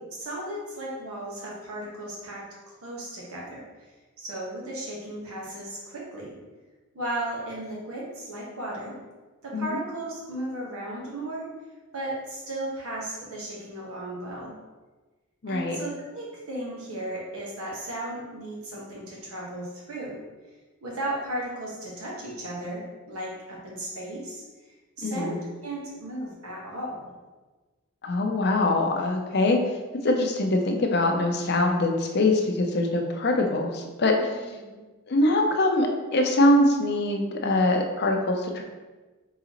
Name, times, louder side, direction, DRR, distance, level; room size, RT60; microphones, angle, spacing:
voice 1, 0.2-2.5 2.8-6.3 6.9-9.0 9.4-11.5 11.9-14.5 15.5-20.2 20.8-27.1 34.1-34.8, right 1 dB, 85° right, -4 dB, 1.2 m, -35 dB
voice 2, 15.4-15.8 25.0-25.4 28.0-29.6 30.0-34.3 35.1-38.6, left 2 dB, 50° left, 3 dB, 0.5 m, -23 dB
4.0 x 3.7 x 2.9 m, 1.2 s
head